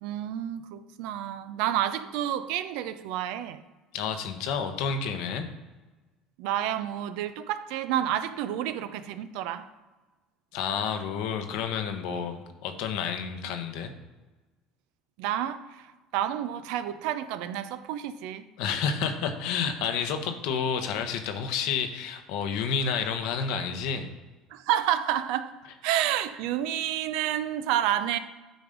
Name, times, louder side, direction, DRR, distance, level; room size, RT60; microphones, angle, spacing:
voice 1, 0.0-3.6 6.4-9.7 15.2-18.4 24.5-25.5 25.8-28.2, right 11 dB, 75° right, 0.5 m, -29 dB
voice 2, 3.9-5.4 10.5-13.9 18.6-24.1, left 6 dB, 75° left, 0.9 m, -30 dB
9.1 x 3.1 x 5.2 m
supercardioid pair, 85°, 0 cm